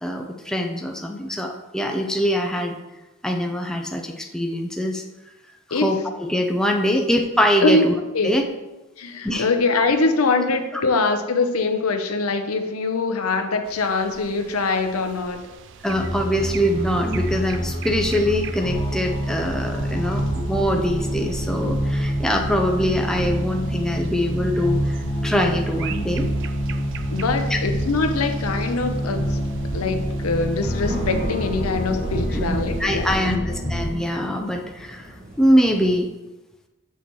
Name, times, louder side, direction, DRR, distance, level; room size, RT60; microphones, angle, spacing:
voice 1, 0.0-2.8 3.2-5.0 5.7-8.0 8.2-8.5 9.2-9.5 15.8-26.3 27.5-27.6 32.3-35.0 35.4-36.1, equal, 5° left, 2 dB, 0.5 m, -23 dB
voice 2, 7.6-8.3 9.0-15.4 20.0-20.2 27.1-29.4 29.7-33.4, left 3 dB, 85° left, 6 dB, 0.7 m, -23 dB
sound 1, 13.7-33.4, right 5 dB, 60° right, 0.4 m, -38 dB
sound 2, 15.8-33.9, equal, 35° left, 0.9 m, -27 dB
sound 3, 28.6-36.0, equal, 30° right, 1.4 m, -38 dB
6.9 x 6.3 x 3.1 m, 1.1 s
head